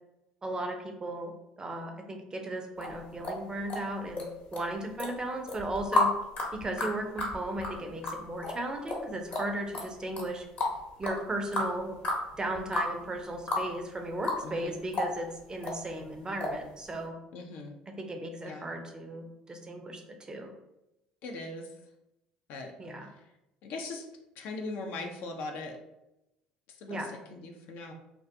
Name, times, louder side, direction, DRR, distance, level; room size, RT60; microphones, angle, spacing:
voice 1, 0.4-1.3 1.6-6.1 6.6-10.5 11.0-12.0 12.4-17.1 17.9-20.5 22.8-23.1 26.9-27.1, right 1 dB, 20° right, 4 dB, 0.5 m, -36 dB
sound 1, 2.8-4.3 4.5-5.1 5.5-13.7 14.0-14.7 14.9-15.8 16.4-16.6 16.9-17.0, left 2 dB, 45° left, 0.9 m, -32 dB
voice 2, 14.4-14.8 17.3-17.7 18.4-18.7 21.2-21.7 22.5-23.1 23.6-24.1 24.4-25.8 26.8-27.9, left 2 dB, 60° left, 3 dB, 0.4 m, -40 dB
2.4 x 2.2 x 2.6 m, 0.90 s
hypercardioid pair, 65°, 3 cm